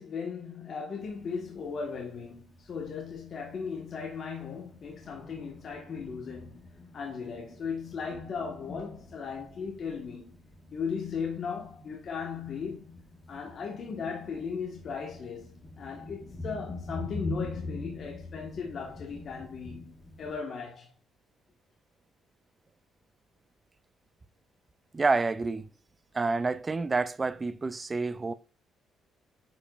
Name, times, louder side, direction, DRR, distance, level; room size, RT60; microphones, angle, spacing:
voice 1, 0.0-6.6 6.9-10.3 10.7-13.0 13.3-20.9, left 6 dB, 45° left, 1.4 m, -37 dB
Thunder, 1.0-20.4, left 2 dB, 20° left, 1.5 m, -44 dB
voice 2, 24.9-25.7 26.1-28.3, right 3 dB, 20° right, 0.4 m, -28 dB
8.6 x 5.1 x 2.5 m
cardioid pair, 145°, 0 cm